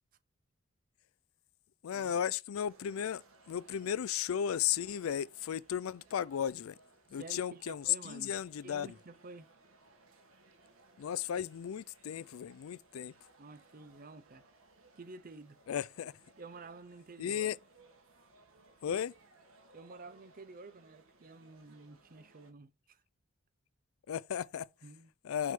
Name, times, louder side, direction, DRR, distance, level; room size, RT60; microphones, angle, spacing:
voice 1, 1.8-6.7 7.1-8.9 11.0-13.1 15.7-16.1 17.2-17.6 18.8-19.1 24.1-24.7 25.2-25.5, left 9 dB, 75° left, 0.4 m, -35 dB
sound 1, 2.7-22.5, right 3 dB, 80° right, 1.3 m, -64 dB
voice 2, 7.1-8.4 8.6-9.5 13.4-14.5 15.0-15.6 16.4-17.5 19.7-23.0 24.8-25.1, right 3 dB, 45° right, 0.7 m, -51 dB
6.1 x 3.5 x 5.8 m
head